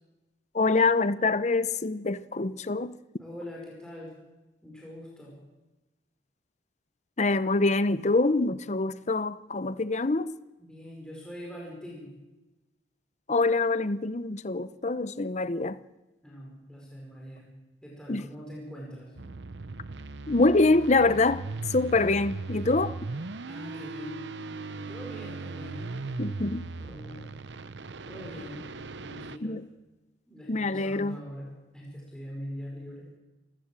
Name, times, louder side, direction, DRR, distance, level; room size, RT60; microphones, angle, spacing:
voice 1, 0.5-3.0 7.2-10.3 13.3-15.8 18.1-18.2 20.3-21.4 21.7-22.9 26.2-26.7 29.4-29.6 30.5-31.2, left 3 dB, 40° left, 0.7 m, -25 dB
voice 2, 3.2-4.1 4.6-5.4 10.6-12.2 16.2-17.5 17.8-19.1 23.5-25.9 26.8-27.3 28.1-28.6 29.0-29.6 30.3-33.1, equal, 5° left, 5.2 m, -43 dB
sound 1, 19.2-29.4, right 3 dB, 70° right, 0.8 m, -38 dB
28.0 x 15.5 x 7.6 m
head